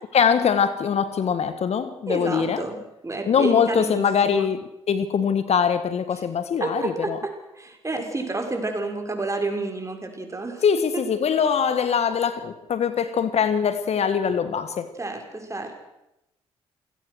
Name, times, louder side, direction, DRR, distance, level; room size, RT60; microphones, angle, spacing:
voice 1, 0.1-2.6 3.3-7.2 10.6-14.9, left 7 dB, 55° left, 1.6 m, -22 dB
voice 2, 2.1-2.8 3.0-4.5 6.6-10.6 10.9-11.0 14.9-15.7, right 2 dB, 25° right, 6.2 m, -30 dB
28.5 x 17.0 x 6.4 m
hypercardioid pair, 45°, 13 cm